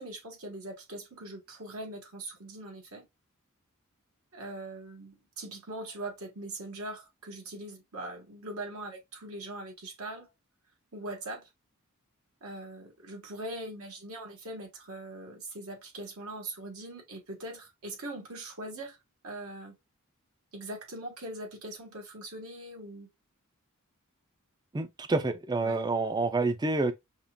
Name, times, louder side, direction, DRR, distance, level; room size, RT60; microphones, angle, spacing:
voice 1, 0.0-3.1 4.3-10.3 10.9-11.5 12.4-19.0 19.2-19.7 20.5-23.1 25.6-25.9, right 1 dB, 80° right, 1.3 m, -41 dB
voice 2, 24.7-26.9, right 3 dB, 20° right, 0.4 m, -28 dB
5.4 x 2.4 x 2.2 m
head